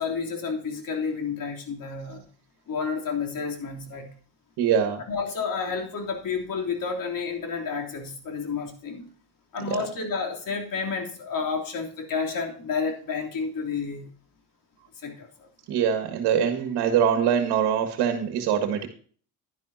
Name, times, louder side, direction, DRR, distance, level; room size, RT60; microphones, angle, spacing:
voice 1, 0.0-2.3 2.7-4.1 5.1-9.1 9.5-14.1 14.9-15.5, left 5 dB, 55° left, 2 dB, 3.2 m, -30 dB
voice 2, 4.6-5.0 9.7-9.8 15.7-18.9, right 8 dB, 85° right, 5 dB, 1.7 m, -23 dB
11.0 x 11.0 x 2.8 m, 0.44 s
cardioid pair, 90°, 39 cm